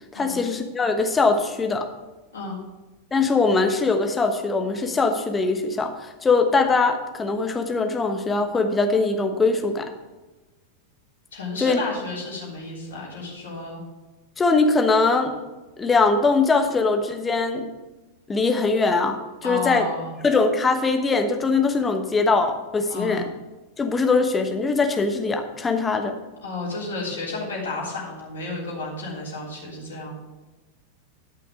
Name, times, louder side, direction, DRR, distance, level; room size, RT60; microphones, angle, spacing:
voice 1, 0.1-1.9 3.1-9.9 11.6-11.8 14.4-15.4 15.8-17.7 18.3-19.9 20.2-23.3 23.8-26.1, left 3 dB, 15° left, 5 dB, 1.1 m, -21 dB
voice 2, 11.3-13.8 19.4-20.1 22.9-23.3 26.4-30.2, left 2 dB, 65° left, -5 dB, 3.5 m, -32 dB
12.0 x 5.8 x 5.1 m, 1.2 s
figure-of-eight pair, 90°, 0 cm